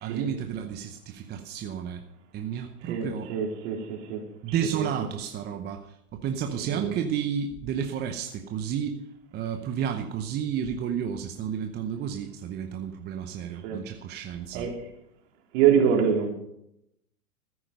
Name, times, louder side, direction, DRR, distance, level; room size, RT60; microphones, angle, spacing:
voice 1, 0.0-2.0 2.3-3.3 4.4-5.9 6.1-9.0 9.3-14.7, right 8 dB, 20° right, 6 dB, 0.8 m, -31 dB
voice 2, 2.8-4.2 4.8-4.9 6.7-6.9 13.6-13.8 14.5-14.7 15.5-16.3, right 8 dB, 50° right, 1 dB, 3.9 m, -25 dB
14.5 x 9.8 x 5.3 m, 0.79 s
hypercardioid pair, 120°, 46 cm